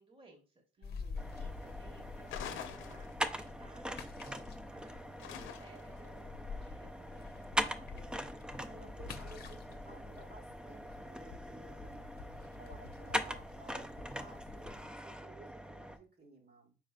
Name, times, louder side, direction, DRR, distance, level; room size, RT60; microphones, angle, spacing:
voice 1, 0.0-0.9 1.4-7.3, right 2 dB, 25° right, 2 dB, 1.4 m, -60 dB
sound 1, 0.8-14.9, left 4 dB, 50° left, 0.7 m, -48 dB
voice 2, 0.8-1.4 7.2-8.3 8.7-12.1 12.5-16.8, right 2 dB, 55° right, 0 dB, 1.5 m, -57 dB
sound 2, 1.2-16.0, equal, 5° right, 0.4 m, -42 dB
sound 3, 2.3-3.5 5.2-6.0, left 9 dB, 85° left, 0.6 m, -45 dB
4.8 x 4.7 x 2.3 m, 0.34 s
cardioid pair, 90°, 20 cm